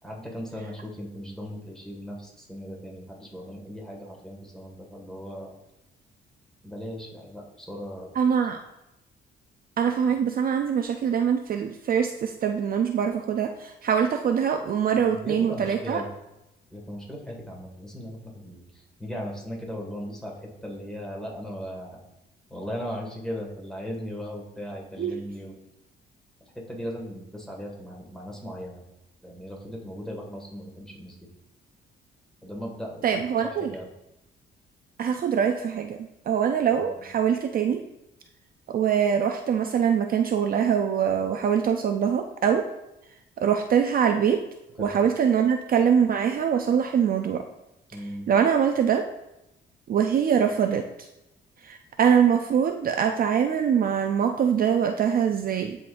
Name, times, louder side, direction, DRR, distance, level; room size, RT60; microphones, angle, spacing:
voice 1, 0.0-5.5 6.6-8.1 15.1-16.1 16.7-20.3 20.6-22.0 22.5-25.6 26.7-28.8 29.2-31.2 32.4-33.2 33.7-33.9 36.8-36.9 44.8-44.9 47.9-48.3, equal, 5° left, -2 dB, 1.8 m, -37 dB
voice 2, 8.2-8.6 9.8-16.0 25.0-25.1 33.0-33.7 35.0-36.0 36.3-37.8 38.7-42.7 43.4-44.4 44.8-47.4 48.3-49.0 49.9-50.8 51.6-55.8, right 8 dB, 45° right, 6 dB, 0.4 m, -23 dB
10.0 x 3.9 x 2.5 m, 0.91 s
cardioid pair, 90°, 20 cm